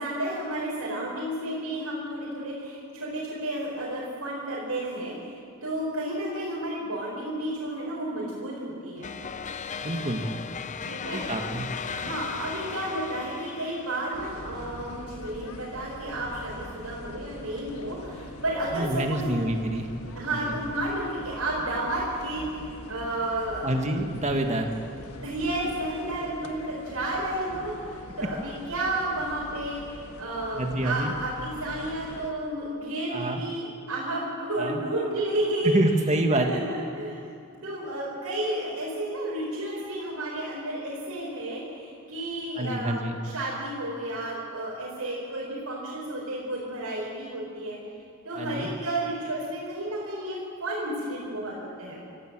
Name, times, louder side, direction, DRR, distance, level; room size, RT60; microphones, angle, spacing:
voice 1, 0.0-9.1 10.8-11.2 12.0-19.4 20.1-22.4 22.9-23.7 25.0-35.7 36.3-37.2 37.6-47.8 48.2-52.0, right 1 dB, 80° right, -5 dB, 4.8 m, -32 dB
sound 1, 9.0-14.5, left 5 dB, 35° left, 0.6 m, -37 dB
voice 2, 9.8-10.3 11.1-11.7 18.7-19.9 20.3-20.6 23.6-24.7 30.6-31.1 33.1-33.4 34.6-34.8 35.6-36.6 42.6-43.2 48.4-48.7, right 1 dB, 30° right, 4 dB, 1.8 m, -27 dB
sound 2, 14.1-32.3, left 1 dB, 80° left, 1.6 m, -43 dB
25.0 x 15.0 x 7.6 m, 2.4 s
head